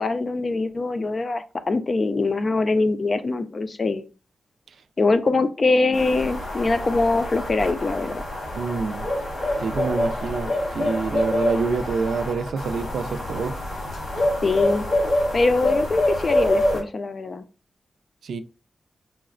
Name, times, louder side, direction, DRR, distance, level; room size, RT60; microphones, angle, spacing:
voice 1, 0.0-4.1 5.0-8.2 14.4-14.9 15.3-17.4, left 3 dB, 40° left, 0.4 m, -23 dB
sound 1, 5.9-16.8, left 1 dB, 85° left, 1.5 m, -26 dB
voice 2, 8.6-9.1 9.6-13.6 18.2-18.4, right 4 dB, 85° right, 0.3 m, -27 dB
5.6 x 2.0 x 2.4 m
wide cardioid pair, 120°, 0 cm